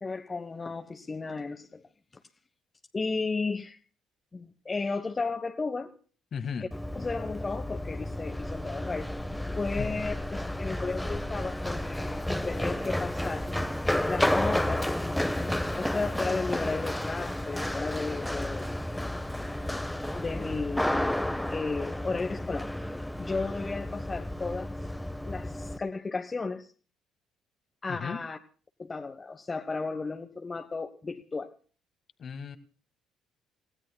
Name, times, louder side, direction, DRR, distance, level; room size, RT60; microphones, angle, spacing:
voice 1, 0.0-1.8 2.9-3.8 4.3-6.0 6.9-9.1 9.6-13.5 14.1-14.9 15.8-18.7 20.1-21.2 21.5-22.7 23.2-24.7 25.3-26.7 27.8-28.4 28.8-31.5, left 4 dB, 30° left, 6 dB, 1.3 m, -34 dB
voice 2, 6.3-6.7 9.8-9.9 27.9-28.2 32.2-32.6, left 6 dB, 50° left, 9 dB, 1.8 m, -35 dB
Run, 6.7-25.8, left 1 dB, 5° left, 1.3 m, -31 dB
29.0 x 16.5 x 2.3 m, 0.40 s
hypercardioid pair, 50°, 0 cm